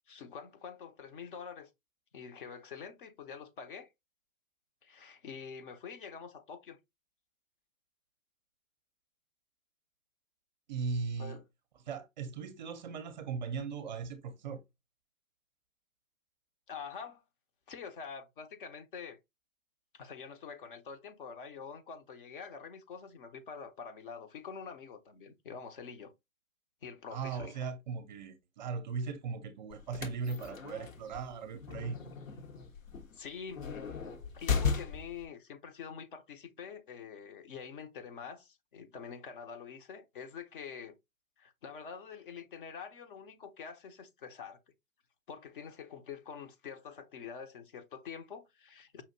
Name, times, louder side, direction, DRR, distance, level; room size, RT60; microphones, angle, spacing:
voice 1, 0.1-1.7 2.1-3.9 4.8-6.8 11.2-11.4 16.7-17.2 17.7-19.2 19.9-26.1 26.8-27.6 33.1-33.7 34.3-40.9 41.4-44.6 45.3-49.0, left 6 dB, 40° left, 0.8 m, -46 dB
voice 2, 10.7-11.4 11.8-14.6 27.1-32.0, right 5 dB, 35° right, 0.6 m, -38 dB
sound 1, 29.7-35.3, left 6 dB, 70° left, 1.3 m, -36 dB
5.6 x 2.6 x 2.7 m
figure-of-eight pair, 130°, 41 cm